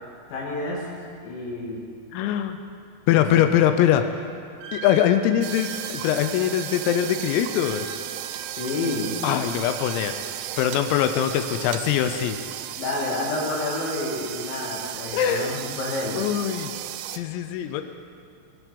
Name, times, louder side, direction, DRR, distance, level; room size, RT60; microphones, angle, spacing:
voice 1, 0.3-0.9 1.2-1.8 3.1-3.2 8.5-9.2 12.8-16.2, left 2 dB, 65° left, -3 dB, 4.5 m, -29 dB
voice 2, 2.1-2.6 3.1-4.2 4.7-7.9 9.2-10.2 10.6-12.4 15.1-15.6 16.1-16.7 17.1-17.8, left 10 dB, 90° left, 8 dB, 3.5 m, -22 dB
Wind instrument woodwind instrument, 4.6-10.6, right 5 dB, 75° right, 3.4 m, -41 dB
sound 1, 5.4-17.2, right 13 dB, 90° right, 3.3 m, -35 dB
22.5 x 9.6 x 5.2 m, 2.3 s
omnidirectional pair, 6.0 m